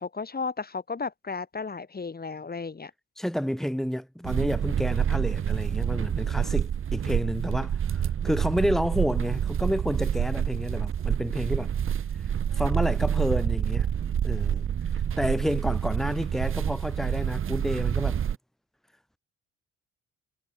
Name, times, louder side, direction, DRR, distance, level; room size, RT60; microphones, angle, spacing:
voice 1, 0.0-2.9, left 4 dB, 30° left, 5.2 m, -34 dB
voice 2, 3.2-11.7 12.2-13.9 14.2-14.7 14.9-18.2, equal, ahead, 3.8 m, -30 dB
sound 1, 4.2-18.4, right 9 dB, 45° right, 1.0 m, -27 dB
cardioid pair, 90°, 30 cm